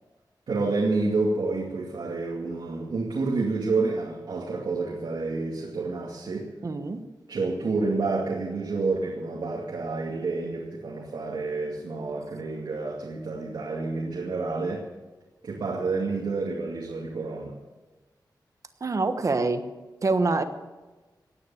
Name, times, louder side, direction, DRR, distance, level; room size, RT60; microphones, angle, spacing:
voice 1, 0.5-6.5 7.3-14.8 15.4-17.6, right 3 dB, 75° right, -2 dB, 2.4 m, -29 dB
voice 2, 6.6-7.0 18.8-19.6 20.0-20.4, right 3 dB, 45° right, 9 dB, 1.2 m, -25 dB
18.0 x 9.9 x 7.2 m, 1.2 s
wide cardioid pair, 155°, 8 cm